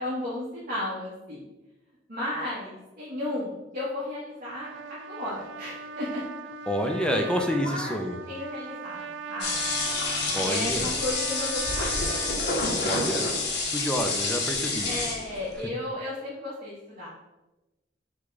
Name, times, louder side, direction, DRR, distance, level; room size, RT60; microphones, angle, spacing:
voice 1, 0.0-1.4 2.1-4.7 5.1-6.2 7.1-7.3 7.6-8.0 8.3-9.8 10.4-11.9 14.8-17.1, left 1 dB, 50° right, -8 dB, 1.2 m, -34 dB
Trumpet, 4.4-12.4, right 5 dB, 70° right, 0.3 m, -39 dB
voice 2, 6.7-8.2 10.3-10.9 12.8-13.3 13.7-14.9, equal, 5° left, 4 dB, 0.4 m, -28 dB
sound 1, 9.4-15.5, left 3 dB, 60° left, 0.9 m, -28 dB
6.0 x 2.3 x 3.9 m, 1.0 s
head